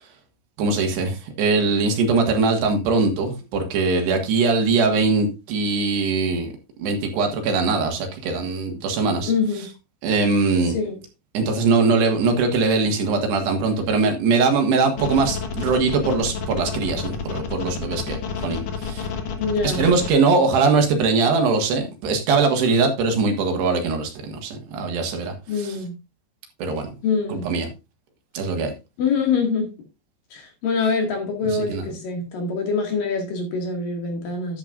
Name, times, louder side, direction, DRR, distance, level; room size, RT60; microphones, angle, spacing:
voice 1, 0.6-6.5 6.8-9.3 10.0-10.8 11.4-19.1 19.6-25.7 26.6-26.9 27.3-27.7 28.4-28.7 31.5-31.8, right 4 dB, 70° right, 3.5 m, -21 dB
voice 2, 9.2-9.7 10.7-11.0 19.4-19.9 25.5-25.9 27.0-27.5 29.0-29.7 30.3-34.6, left 4 dB, 55° left, 3.3 m, -24 dB
sound 1, 15.0-20.1, left 6 dB, 90° left, 1.5 m, -29 dB
11.0 x 10.5 x 2.5 m
omnidirectional pair, 5.3 m